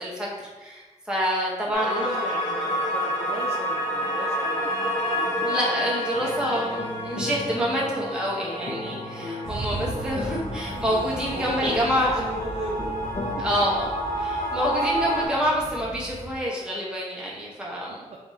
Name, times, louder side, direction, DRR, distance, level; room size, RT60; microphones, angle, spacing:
voice 1, 0.0-2.0 5.1-12.1 13.4-13.9 14.2-18.0, equal, 5° right, -5 dB, 1.0 m, -27 dB
sound 1, 1.7-15.3, equal, 60° left, 1.0 m, -29 dB
voice 2, 1.7-6.8 7.7-7.9 11.3-13.1 13.4-13.5 18.1-18.2, right 3 dB, 60° right, -2 dB, 0.5 m, -37 dB
sound 2, 6.1-13.8, left 2 dB, 40° left, 0.5 m, -36 dB
sound 3, 9.4-16.3, right 2 dB, 15° left, 1.2 m, -38 dB
6.7 x 2.8 x 2.7 m, 1.2 s
wide cardioid pair, 175°, 12 cm